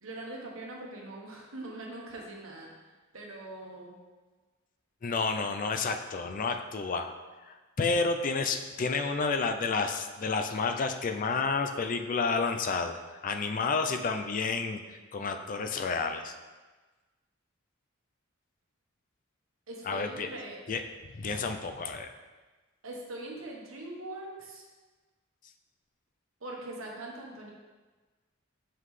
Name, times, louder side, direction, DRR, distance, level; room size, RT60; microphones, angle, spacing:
voice 1, 0.0-2.7 3.1-4.0 19.7-20.6 22.8-24.6 26.4-27.5, right 2 dB, 80° right, -1 dB, 1.2 m, -42 dB
voice 2, 5.0-7.1 7.4-13.0 13.2-16.3 19.8-20.3 20.7-20.8 21.1-22.1, left 4 dB, 40° left, 7 dB, 0.4 m, -30 dB
5.7 x 5.5 x 3.2 m, 1.3 s
head